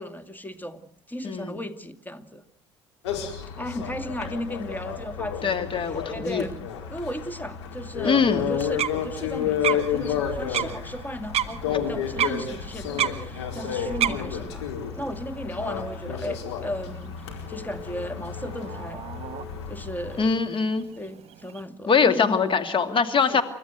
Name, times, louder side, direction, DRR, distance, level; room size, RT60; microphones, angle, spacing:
voice 1, 0.0-2.4 3.6-6.6 6.9-14.7 15.0-19.1 19.7-20.3 21.0-22.3 23.3-23.4, equal, 10° left, 10 dB, 2.3 m, -35 dB
sound 1, 3.0-20.3, left 8 dB, 70° left, 4.6 m, -31 dB
voice 2, 5.4-6.4 8.0-8.4 11.7-11.8 20.2-20.9 21.9-23.4, left 5 dB, 35° left, 8 dB, 2.4 m, -22 dB
sound 2, 8.5-21.6, right 10 dB, 45° right, 1.3 m, -34 dB
29.5 x 14.0 x 8.0 m, 0.67 s
figure-of-eight pair, 55°, 15 cm